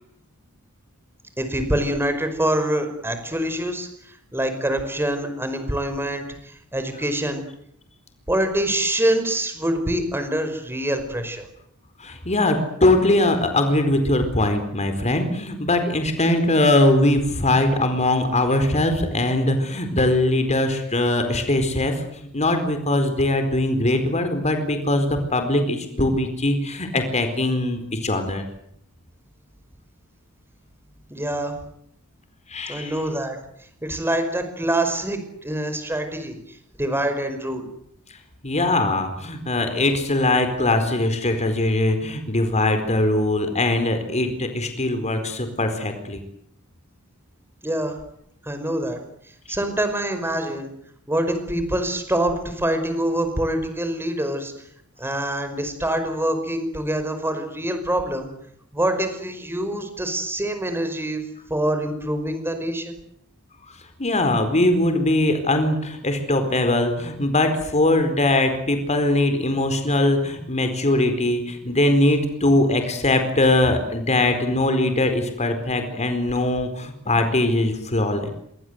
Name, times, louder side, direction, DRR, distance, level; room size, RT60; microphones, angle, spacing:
voice 1, 1.4-7.5 8.3-11.5 31.1-31.5 32.7-33.4 33.8-37.7 47.6-48.0 48.4-49.0 49.3-50.7 51.1-54.5 55.0-58.3 58.7-61.2 61.5-63.0, right 1 dB, 10° right, 8 dB, 5.4 m, -25 dB
voice 2, 12.0-28.4 32.5-32.9 38.4-46.2 64.0-78.3, left 1 dB, 30° left, 7 dB, 4.3 m, -21 dB
27.5 x 24.0 x 8.1 m, 0.71 s
head